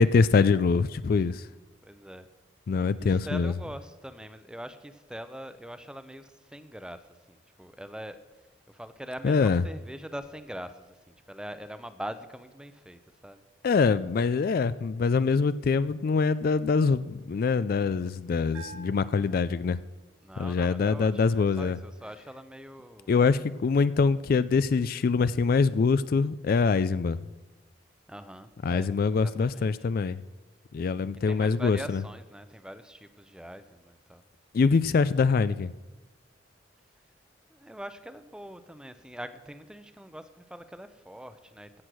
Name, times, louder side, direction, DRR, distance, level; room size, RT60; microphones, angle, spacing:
voice 1, 0.0-1.4 2.7-3.5 9.2-9.6 13.6-19.8 20.4-21.8 23.1-27.2 28.6-30.2 30.7-32.0 34.5-35.7, left 4 dB, 50° left, 15 dB, 0.3 m, -24 dB
voice 2, 1.8-2.3 3.0-13.4 20.2-23.1 28.1-28.9 29.2-29.9 31.2-34.2 37.5-41.8, equal, 5° right, 11 dB, 0.6 m, -43 dB
Bell, 18.5-20.2, right 4 dB, 90° right, 3.3 m, -48 dB
16.0 x 6.4 x 6.2 m, 1.2 s
head